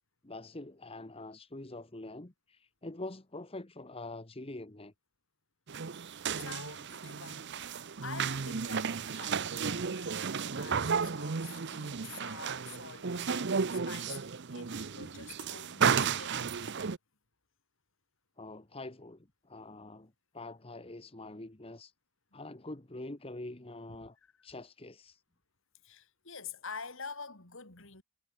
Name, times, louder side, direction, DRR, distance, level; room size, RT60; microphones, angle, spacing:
voice 1, 0.2-4.9 18.4-21.9 22.3-24.2 24.4-25.2, left 2 dB, 25° left, 1.2 m, -45 dB
sound 1, 5.7-17.0, right 6 dB, 50° right, 0.7 m, -33 dB
voice 2, 6.3-16.6 24.2-24.3 25.8-28.0, left 5 dB, 60° left, 3.7 m, -47 dB
head